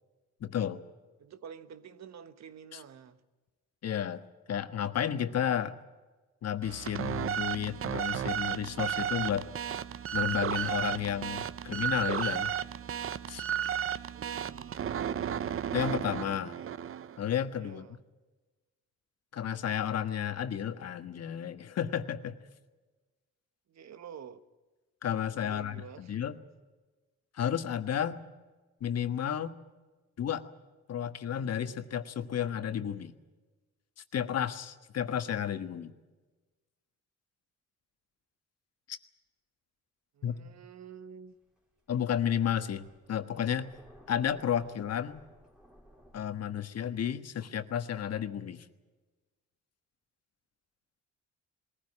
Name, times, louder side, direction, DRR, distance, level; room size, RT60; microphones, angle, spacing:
voice 1, 0.4-0.8 2.7-2.8 3.8-4.2 4.5-5.8 6.4-9.5 10.1-12.5 13.3-13.5 15.7-16.6 17.2-18.0 19.3-22.4 25.0-26.4 27.3-28.2 28.8-29.5 30.2-30.4 30.9-33.1 34.1-35.9 38.9-39.0 40.2-40.4 41.9-43.7 44.1-45.2 46.1-48.6, left 9 dB, 55° left, 1.5 m, -32 dB
voice 2, 1.2-3.2 14.1-14.8 17.6-18.0 23.7-24.4 25.4-26.2 40.1-41.3, right 7 dB, 65° right, 1.4 m, -49 dB
sound 1, 6.6-17.2, right 9 dB, 45° right, 0.7 m, -33 dB
Thunder, 41.3-46.2, equal, 5° right, 3.7 m, -58 dB
21.5 x 15.0 x 9.8 m
cardioid pair, 90°, 30 cm